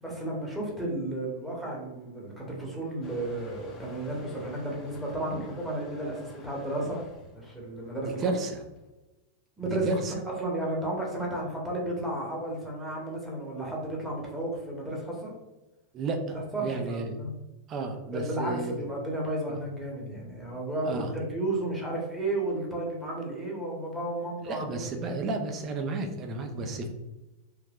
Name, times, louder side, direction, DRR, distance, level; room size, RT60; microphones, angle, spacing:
voice 1, 0.0-7.0 7.3-8.2 9.6-10.0 10.4-15.3 16.5-17.3 18.1-25.2, right 1 dB, 5° right, -3 dB, 1.0 m, -33 dB
Motor vehicle (road) / Engine starting / Accelerating revving vroom, 3.0-8.9, left 3 dB, 25° left, 0.6 m, -51 dB
voice 2, 8.0-8.6 9.7-10.1 15.9-17.2 17.7-18.8 19.5-19.6 20.8-21.1 24.4-26.9, right 3 dB, 30° right, 5 dB, 0.5 m, -32 dB
3.3 x 3.1 x 2.3 m, 1.0 s
figure-of-eight pair, 90°, 0 cm